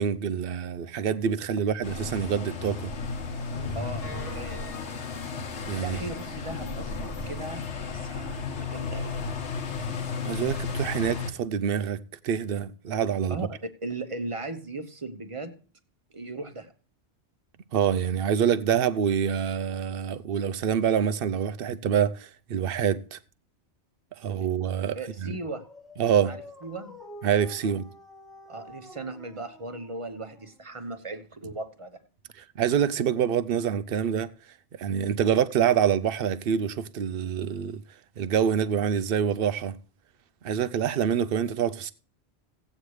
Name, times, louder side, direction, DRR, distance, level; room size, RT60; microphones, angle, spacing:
voice 1, 0.0-2.9 5.7-6.0 10.2-13.5 17.7-23.2 24.2-25.4 26.0-26.3 27.2-27.9 32.6-34.3 34.7-37.8 38.2-39.8 40.4-41.9, right 8 dB, 60° right, 0.8 m, -26 dB
sound 1, 1.8-11.3, left 4 dB, 85° left, 1.5 m, -34 dB
sound 2, 3.5-6.3 6.7-6.8 7.1-7.2 7.6-7.7, left 2 dB, 35° left, 1.0 m, -41 dB
voice 2, 3.7-4.7 5.8-9.2 13.3-15.6 16.1-16.7 24.9-25.6 26.3-27.0 27.6-27.7 28.5-32.0, right 2 dB, 30° right, 0.9 m, -38 dB
Dog, 25.2-30.9, left 1 dB, ahead, 0.9 m, -49 dB
16.5 x 8.6 x 3.2 m
omnidirectional pair, 1.2 m